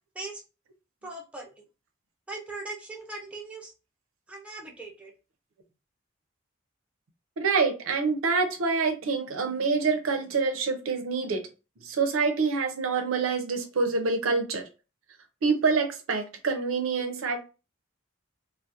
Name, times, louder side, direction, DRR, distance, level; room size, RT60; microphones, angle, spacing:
voice 1, 1.0-1.5 2.3-3.7 4.3-5.1, right 2 dB, 5° right, -1 dB, 0.4 m, -39 dB
voice 2, 7.4-11.4 11.8-14.6 15.4-17.4, right 4 dB, 90° right, 5 dB, 0.5 m, -26 dB
2.3 x 2.0 x 2.7 m, 0.31 s
head